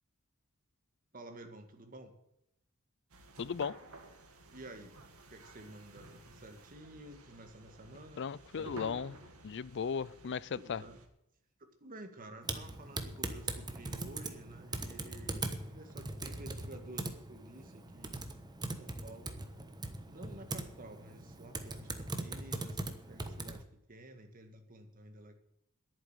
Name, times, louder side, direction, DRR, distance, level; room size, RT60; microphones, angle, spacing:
voice 1, 1.1-2.1 4.5-5.0 5.3-8.2 8.5-9.0 10.5-11.0 11.6-18.2 18.6-19.4 20.1-22.8 23.1-25.3, right 1 dB, 40° right, 1.9 m, -52 dB
sound 1, 3.1-11.1, right 2 dB, 80° right, 2.1 m, -53 dB
voice 2, 3.4-3.8 8.2-9.1 9.4-10.8, left 6 dB, 55° left, 0.5 m, -36 dB
Typing, 12.4-23.6, right 2 dB, 20° right, 1.2 m, -41 dB
11.0 x 8.9 x 9.0 m
head